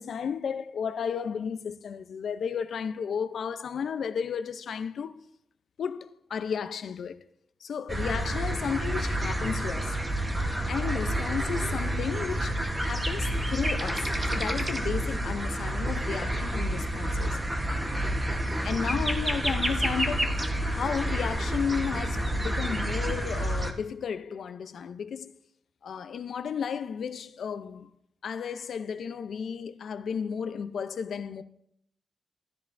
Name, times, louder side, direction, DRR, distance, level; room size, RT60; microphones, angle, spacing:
voice 1, 0.0-5.2 5.8-7.2 7.6-10.0 10.7-17.4 18.6-25.3 25.8-27.9 28.2-31.4, left 7 dB, 75° left, 0.5 m, -33 dB
sound 1, 7.9-23.7, right 1 dB, 15° right, 1.1 m, -29 dB
13.5 x 12.5 x 2.6 m
wide cardioid pair, 130°, 0 cm